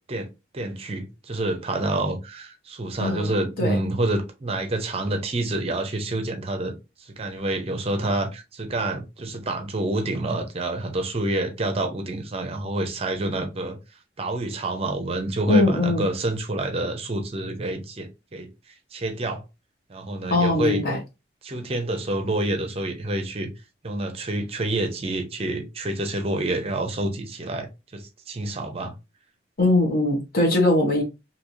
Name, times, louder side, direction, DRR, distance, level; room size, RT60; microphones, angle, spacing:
voice 1, 0.5-13.8 14.2-18.5 18.9-19.4 19.9-21.0 21.4-23.5 23.8-28.9, right 2 dB, 30° right, 0.6 m, -28 dB
voice 2, 15.5-16.1 20.3-21.0 29.6-31.0, left 2 dB, 55° left, 1.0 m, -21 dB
3.1 x 2.7 x 2.6 m
head